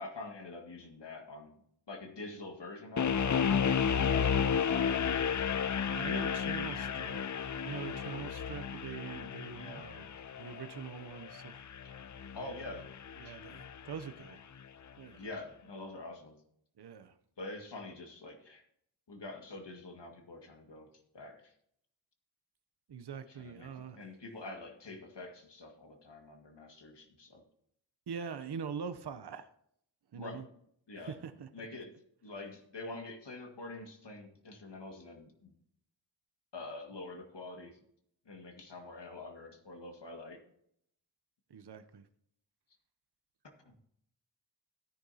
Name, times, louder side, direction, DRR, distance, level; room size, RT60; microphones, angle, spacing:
voice 1, 0.0-1.5 1.9-5.3 6.7-7.0 9.6-9.9 12.3-12.9 13.2-13.3 15.2-16.4 17.4-18.6 19.1-20.9 21.1-21.5 23.3-27.4 30.2-30.4 30.9-31.2 31.5-32.0 32.2-35.6 36.5-37.8 38.3-40.4 43.6-43.7, left 2 dB, 70° left, 4 dB, 1.9 m, -46 dB
sound 1, 3.0-14.0, left 7 dB, 45° left, 0.5 m, -33 dB
voice 2, 5.9-7.4 7.6-10.1 10.3-11.5 12.4-12.6 13.2-14.4 15.0-15.2 16.8-17.2 22.9-24.0 28.1-29.5 30.1-30.4 31.0-31.7 41.5-42.0, right 6 dB, 65° right, 10 dB, 0.7 m, -43 dB
13.5 x 9.9 x 2.8 m, 0.70 s
wide cardioid pair, 50°, 43 cm